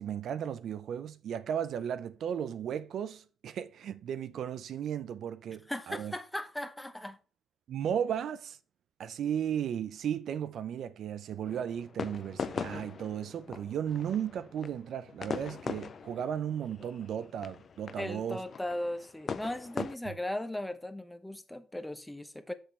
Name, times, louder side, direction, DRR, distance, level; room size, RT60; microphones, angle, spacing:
voice 1, 0.0-6.1 7.7-8.6 9.0-18.4 19.8-20.1, right 9 dB, 70° right, 0.6 m, -35 dB
voice 2, 5.7-7.2 18.0-22.5, left 1 dB, 5° left, 0.8 m, -37 dB
sound 1, 11.5-20.0, left 6 dB, 50° left, 0.4 m, -41 dB
6.4 x 6.3 x 3.3 m
cardioid pair, 90°, 0 cm